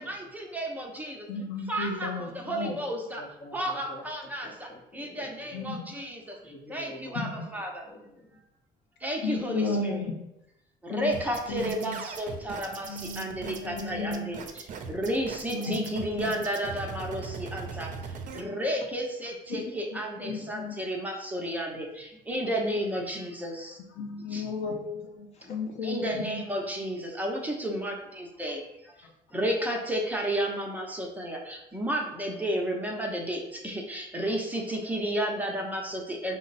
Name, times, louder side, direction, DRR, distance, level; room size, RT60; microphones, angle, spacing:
voice 1, 0.5-1.1 1.7-2.1 2.5-3.2 3.5-4.5 5.0-6.2 6.7-7.7 9.0-10.0 10.9-12.9 13.2-14.4 14.9-17.9 18.4-21.9 22.3-23.5 24.3-24.4 25.8-27.9 28.4-28.6 29.3-31.4 31.7-36.4, right 1 dB, 10° right, 0 dB, 0.7 m, -32 dB
voice 2, 1.3-2.8 5.5-6.0 7.1-7.5 9.2-10.2 10.9-11.1 11.5-12.0 12.7-14.3 15.5-16.5 19.5-20.8 24.0-26.4 29.0-29.1, left 3 dB, 85° left, 3 dB, 0.7 m, -34 dB
voice 3, 3.2-4.1 4.4-5.7 6.4-8.4 20.2-20.3 24.0-24.5 25.3-25.5, left 1 dB, 40° left, 2 dB, 0.8 m, -48 dB
sound 1, 11.1-18.4, right 5 dB, 50° right, 0.5 m, -40 dB
5.0 x 2.0 x 4.0 m, 0.86 s
cardioid pair, 110°, 17 cm